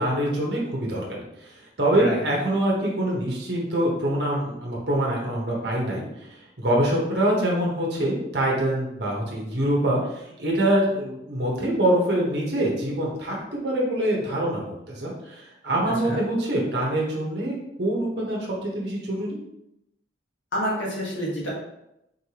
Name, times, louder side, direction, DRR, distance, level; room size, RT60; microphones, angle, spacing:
voice 1, 0.0-6.3 6.6-14.6 14.9-19.4, right 1 dB, 60° right, -3 dB, 1.2 m, -25 dB
voice 2, 20.5-21.5, equal, 70° left, -4 dB, 1.5 m, -28 dB
4.5 x 3.3 x 2.9 m, 0.85 s
head